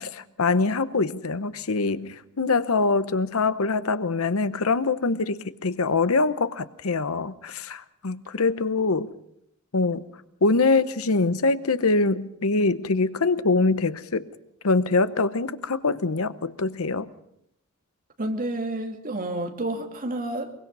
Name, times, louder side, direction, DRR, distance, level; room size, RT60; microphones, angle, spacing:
voice 1, 0.0-9.1 9.7-10.0 10.4-14.3 14.6-17.1, left 3 dB, 70° left, 0.9 m, -24 dB
voice 2, 18.2-20.5, right 1 dB, 40° right, 2.5 m, -30 dB
23.5 x 23.0 x 5.5 m
head